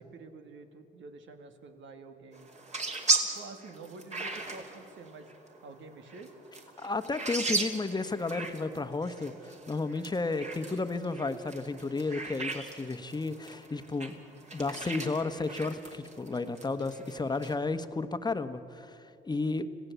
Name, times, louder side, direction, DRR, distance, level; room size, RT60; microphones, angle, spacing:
voice 1, 0.0-2.5 3.3-5.3 5.6-6.3 14.1-14.5 19.4-19.6, right 3 dB, 70° right, 6 dB, 2.3 m, -48 dB
sound 1, 2.3-17.5, right 3 dB, 35° right, 3.2 m, -37 dB
voice 2, 6.8-14.1 14.5-19.7, left 3 dB, 20° left, 9 dB, 1.3 m, -33 dB
26.0 x 16.5 x 8.2 m, 2.7 s
cardioid pair, 90°, 20 cm